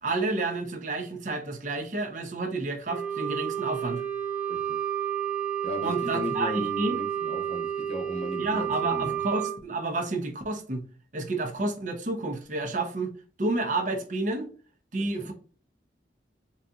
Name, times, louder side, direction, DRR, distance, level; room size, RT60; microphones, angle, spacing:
voice 1, 0.0-4.0 5.8-7.0 8.4-10.8 11.1-13.1 13.4-14.5 14.9-15.3, right 2 dB, 45° right, 0.6 m, -30 dB
Wind instrument woodwind instrument, 2.9-9.6, right 9 dB, 5° right, 0.5 m, -31 dB
voice 2, 4.5-4.8 5.6-9.2 15.0-15.3, left 2 dB, 35° left, 0.8 m, -37 dB
3.9 x 2.7 x 2.3 m
head